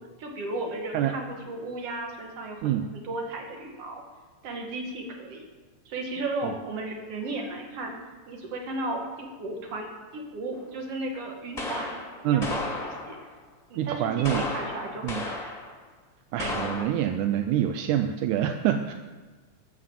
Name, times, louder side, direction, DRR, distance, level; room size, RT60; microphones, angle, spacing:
voice 1, 0.2-4.0 4.4-5.5 5.9-8.0 8.3-9.9 10.1-12.6 12.8-13.2 13.7-15.5, right 2 dB, 55° right, 2 dB, 2.7 m, -35 dB
sound 1, 10.5-10.6 11.6-13.3 14.2-15.7 16.4-16.8, left 2 dB, 20° left, 1.3 m, -33 dB
voice 2, 13.8-14.4 15.0-15.2 16.3-18.9, right 11 dB, 85° right, 7 dB, 2.0 m, -26 dB
12.5 x 7.4 x 7.4 m, 1.3 s
omnidirectional pair, 3.5 m